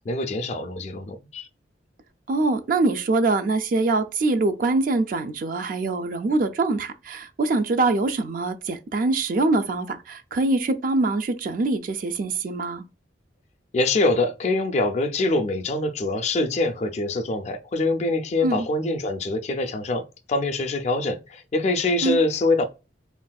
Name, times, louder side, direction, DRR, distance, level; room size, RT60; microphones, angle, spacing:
voice 1, 0.1-1.5 13.7-22.6, left 2 dB, 40° left, 0.3 m, -24 dB
voice 2, 2.3-12.8 18.4-18.7 22.0-22.2, right 3 dB, 50° right, 0.3 m, -24 dB
3.4 x 2.5 x 2.2 m
head